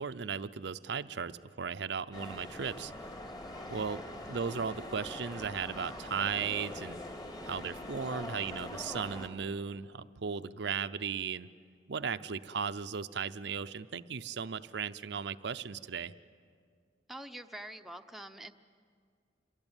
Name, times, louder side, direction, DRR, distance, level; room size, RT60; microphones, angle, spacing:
voice 1, 0.0-2.9 3.7-7.0 7.4-11.5 11.9-16.1, right 6 dB, 70° right, 11 dB, 0.6 m, -36 dB
sound 1, 2.1-9.3, left 1 dB, 25° left, 2.5 m, -43 dB
voice 2, 3.2-3.8 12.5-12.6 17.1-18.5, right 1 dB, ahead, 5 dB, 0.8 m, -47 dB
27.0 x 23.0 x 9.0 m, 2.1 s
head